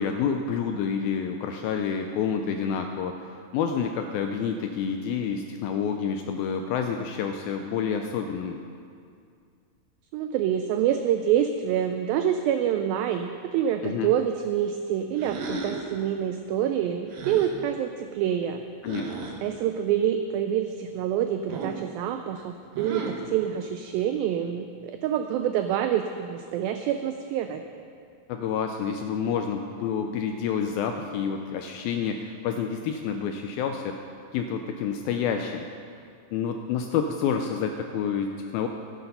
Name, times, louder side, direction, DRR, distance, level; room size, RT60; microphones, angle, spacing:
voice 1, 0.0-8.6 13.8-14.1 18.8-19.3 28.3-35.7 36.3-38.7, left 7 dB, 85° left, 5 dB, 2.1 m, -29 dB
voice 2, 10.1-18.6 19.4-27.6, right 9 dB, 90° right, 7 dB, 2.0 m, -27 dB
sound 1, 15.2-15.9 17.1-17.5 18.9-19.3 21.5-21.9 22.7-23.3, right 3 dB, 65° right, 2.6 m, -34 dB
14.0 x 9.3 x 5.5 m, 2.3 s
omnidirectional pair, 4.7 m